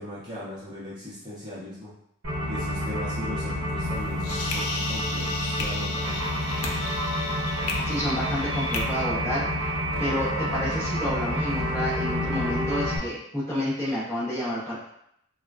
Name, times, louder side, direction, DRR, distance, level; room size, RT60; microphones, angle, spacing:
voice 1, 0.0-1.9 2.5-6.2, left 1 dB, 20° right, -9 dB, 0.7 m, -38 dB
sound 1, 2.2-13.0, equal, 75° right, 0.7 m, -29 dB
sound 2, 3.8-8.8, left 3 dB, 85° left, 0.5 m, -34 dB
voice 2, 7.9-14.8, equal, 10° left, -9 dB, 0.8 m, -30 dB
3.5 x 2.2 x 2.3 m, 0.73 s
head